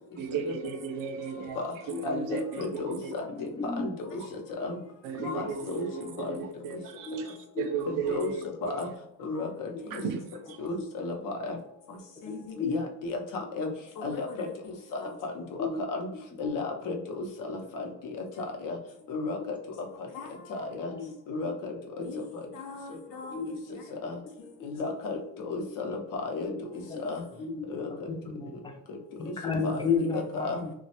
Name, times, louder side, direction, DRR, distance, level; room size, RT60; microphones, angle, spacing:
voice 1, 0.2-3.1 5.0-8.4 9.9-10.6, right 6 dB, 90° right, 7 dB, 0.5 m, -35 dB
voice 2, 2.0-3.5 3.8-4.8 5.2-6.4 7.9-8.9 9.2-10.0 10.6-11.6 12.2-13.7 14.0-16.1 16.4-17.9 18.2-18.8 19.1-19.5 20.1-20.9 21.3-22.2 22.5-23.4 24.0-24.2 24.6-26.5 27.0-27.2 27.7-27.9 29.3-29.4 29.6-29.8 30.1-30.6, left 3 dB, 85° left, 2 dB, 0.7 m, -34 dB
voice 3, 3.3-3.9 7.1-7.2 7.5-7.7 9.7-9.8 12.2-12.8 15.6-15.8 20.9-21.5 23.3-23.6 23.9-24.0 24.8-25.2 25.6-25.7 26.5-26.6 26.9-27.0 27.4-28.8 29.2-30.7, left 4 dB, 15° left, 2 dB, 0.4 m, -33 dB
3.0 x 2.2 x 2.8 m, 0.81 s
cardioid pair, 150°, 32 cm